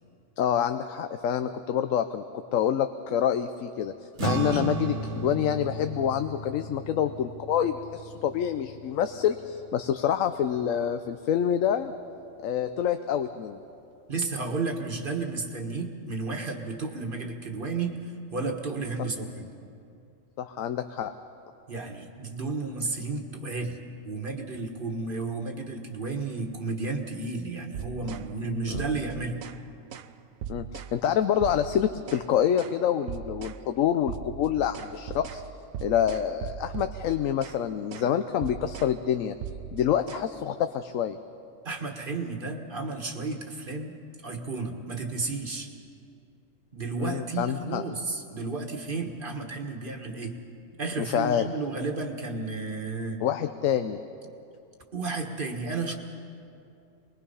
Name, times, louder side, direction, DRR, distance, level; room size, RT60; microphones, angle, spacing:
voice 1, 0.4-2.2 2.5-3.9 4.2-11.9 12.4-13.6 20.4-21.1 28.7-28.8 30.5-35.4 35.8-39.3 39.7-41.2 47.0-47.8 51.0-51.5 53.2-54.0, left 9 dB, 80° left, 9 dB, 1.0 m, -27 dB
sound 1, 4.2-10.8, right 4 dB, 60° right, 1.7 m, -35 dB
voice 2, 14.1-18.0 18.3-19.5 21.7-23.8 24.0-29.4 41.6-45.7 46.7-50.3 50.8-53.2 54.9-55.9, right 3 dB, 40° right, 3 dB, 1.6 m, -32 dB
sound 2, 27.7-28.3 28.7-29.6 29.9-30.1 30.4-31.0 31.4-32.3 32.6-32.8 33.1-33.6 34.1-37.6 37.9-38.1 38.4-39.0 39.4-40.2, right 10 dB, 90° right, 1.1 m, -39 dB
25.0 x 21.0 x 5.6 m, 2.6 s
omnidirectional pair, 1.3 m